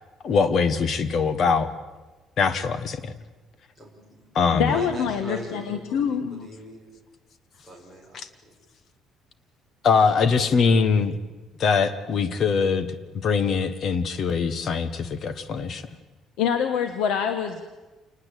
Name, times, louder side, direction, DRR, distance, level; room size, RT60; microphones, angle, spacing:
voice 1, 0.2-1.7 2.4-3.1 4.3-4.7 9.8-11.1 11.6-12.9 13.2-15.8, left 5 dB, 40° left, 13 dB, 1.5 m, -22 dB
voice 2, 3.7-6.9 7.6-8.5, right 1 dB, 15° left, 1 dB, 6.2 m, -40 dB
voice 3, 4.5-6.5 16.4-17.6, left 7 dB, 85° left, 8 dB, 1.6 m, -25 dB
28.0 x 20.0 x 8.4 m, 1.2 s
cardioid pair, 175°, 0 cm